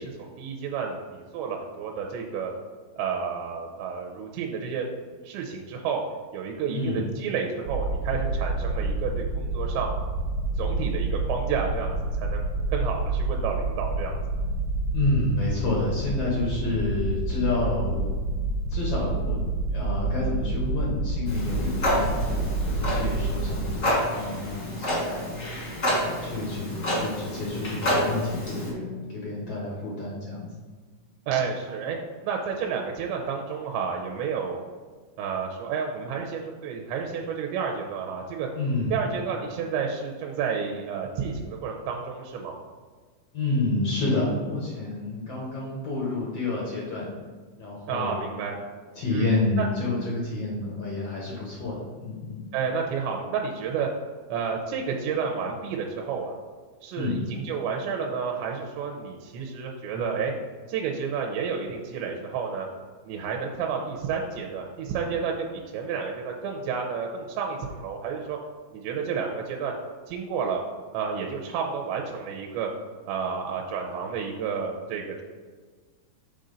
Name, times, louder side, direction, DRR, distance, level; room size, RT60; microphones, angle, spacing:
voice 1, 0.0-2.5 3.0-4.9 5.2-6.0 6.3-9.9 10.6-12.4 12.7-14.2 31.3-32.0 32.2-34.6 35.2-38.5 38.9-42.6 47.9-48.6 49.1-49.3 49.6-49.7 52.5-53.9 54.3-56.4 56.8-60.3 60.7-62.7 63.0-68.4 68.7-69.7 70.1-70.6 70.9-72.7 73.1-75.2, right 6 dB, 85° right, 1 dB, 2.8 m, -30 dB
voice 2, 6.7-7.1 14.9-18.1 18.7-19.4 19.7-25.3 25.9-30.5 38.5-38.9 43.3-47.1 47.6-48.2 48.9-52.4 56.9-57.2, left 2 dB, 90° left, -5 dB, 1.3 m, -29 dB
sound 1, 7.7-23.8, right 2 dB, 70° right, 2.5 m, -28 dB
Clock, 21.3-28.7, equal, 55° left, 0.8 m, -29 dB
7.2 x 3.8 x 5.3 m, 1.5 s
omnidirectional pair, 5.1 m